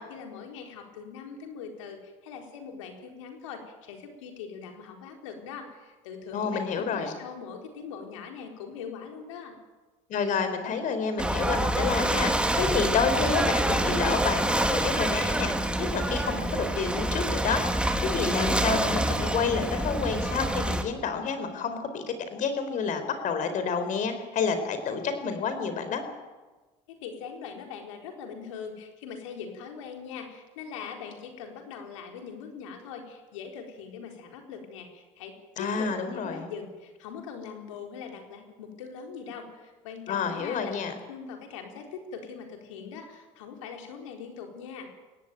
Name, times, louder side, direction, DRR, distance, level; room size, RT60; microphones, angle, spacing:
voice 1, 0.1-9.6 26.9-44.9, left 6 dB, 90° left, 3 dB, 4.2 m, -41 dB
voice 2, 6.3-7.1 10.1-22.0 22.3-26.0 35.6-36.5 40.1-40.9, left 5 dB, 55° left, 9 dB, 4.6 m, -29 dB
Ocean / Boat Water vehicle, 11.2-20.8, right 1 dB, 5° right, 2.5 m, -27 dB
22.0 x 17.5 x 9.1 m, 1.2 s
supercardioid pair, 85°, 16 cm